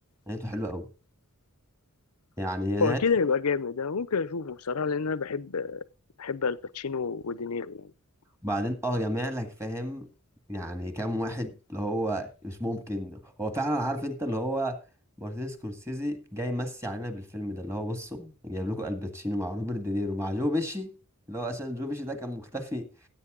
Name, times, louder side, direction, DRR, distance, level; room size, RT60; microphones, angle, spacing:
voice 1, 0.3-0.9 2.4-3.0 8.4-10.1 10.5-14.8 15.2-20.9 21.3-22.9, equal, 15° right, 1.9 m, -31 dB
voice 2, 2.8-5.8 6.2-7.9, left 5 dB, 80° left, 0.7 m, -28 dB
16.0 x 8.4 x 3.8 m
head